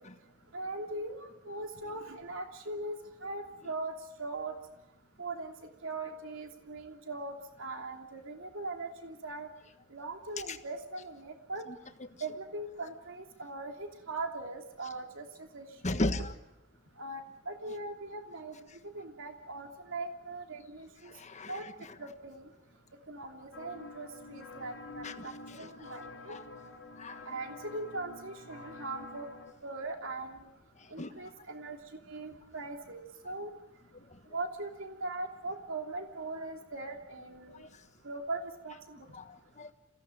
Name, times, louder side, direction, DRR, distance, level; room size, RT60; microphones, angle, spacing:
voice 1, 0.5-3.0 3.2-3.9 4.2-4.5 5.2-5.5 5.8-9.5 9.9-11.6 12.2-16.0 17.0-18.5 18.9-21.1 21.5-21.6 22.0-22.5 23.1-26.4 27.3-29.3 29.6-30.4 30.9-31.8 32.1-33.5 34.3-37.6 38.0-39.0, right 2 dB, 65° right, 4 dB, 3.0 m, -40 dB
voice 2, 15.8-16.3 21.1-21.6 25.0-25.3 25.6-25.7 26.3-26.4 27.0-27.2 31.0-31.1 34.1-34.2 37.5-37.7 39.1-39.7, left 1 dB, 35° left, 8 dB, 1.4 m, -35 dB
sound 1, 23.5-29.5, left 3 dB, 70° left, 2.1 m, -48 dB
27.0 x 16.5 x 9.0 m, 0.94 s
head